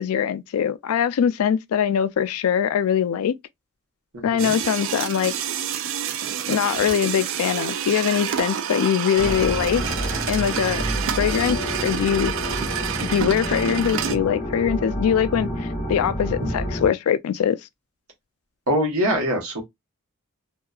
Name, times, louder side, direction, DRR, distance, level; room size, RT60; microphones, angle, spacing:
voice 1, 0.0-3.3 4.2-5.3 6.5-9.8 10.3-10.8 11.2-12.3 13.1-17.6, left 8 dB, 75° left, 0.3 m, -22 dB
voice 2, 4.1-4.5 10.8-11.1 16.4-16.5 18.7-19.6, equal, 75° right, 1.1 m, -24 dB
sound 1, 4.4-14.2, right 9 dB, 60° right, 0.3 m, -28 dB
sound 2, 9.2-16.9, equal, 35° left, 0.9 m, -29 dB
2.7 x 2.3 x 2.3 m
head